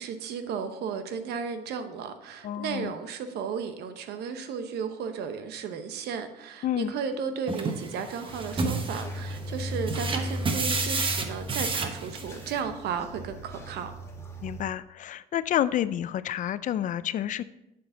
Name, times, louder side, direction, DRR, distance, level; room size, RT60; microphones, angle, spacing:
voice 1, 0.0-13.9, right 6 dB, 75° right, 8 dB, 0.9 m, -34 dB
voice 2, 2.4-2.9 6.6-6.9 14.4-17.4, left 11 dB, 50° left, 16 dB, 0.4 m, -29 dB
sound 1, 7.5-12.6, right 3 dB, 30° right, 1.0 m, -31 dB
sound 2, 8.3-14.6, equal, 15° left, 1.3 m, -37 dB
7.8 x 6.9 x 3.9 m, 0.88 s
cardioid pair, 110°, 17 cm